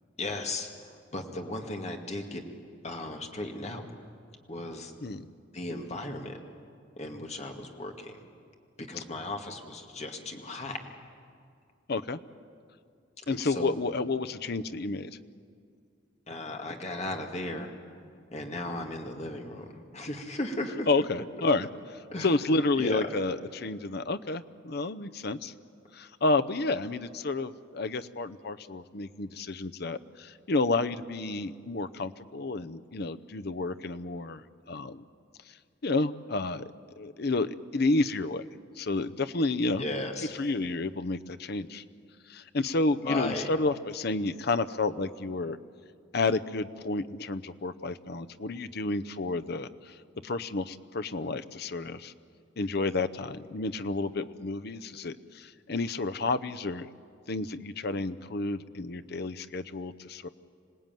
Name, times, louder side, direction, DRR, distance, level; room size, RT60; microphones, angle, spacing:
voice 1, 0.2-2.4 2.8-3.9 4.5-4.9 5.5-6.4 7.0-8.2 8.9-10.8 13.3-13.7 16.3-17.7 18.3-20.9 22.1-22.3 22.8-23.1 39.8-40.3 43.0-43.5, left 2 dB, 35° left, 3 dB, 2.0 m, -36 dB
voice 2, 11.9-12.2 13.3-15.1 20.9-21.7 22.2-25.5 25.9-35.0 35.8-36.7 37.0-38.4 38.8-39.8 40.4-41.8 42.3-45.6 46.1-49.9 50.2-52.1 52.6-56.9 57.3-60.3, left 3 dB, 55° left, 11 dB, 0.7 m, -30 dB
26.5 x 18.0 x 9.2 m, 2.3 s
head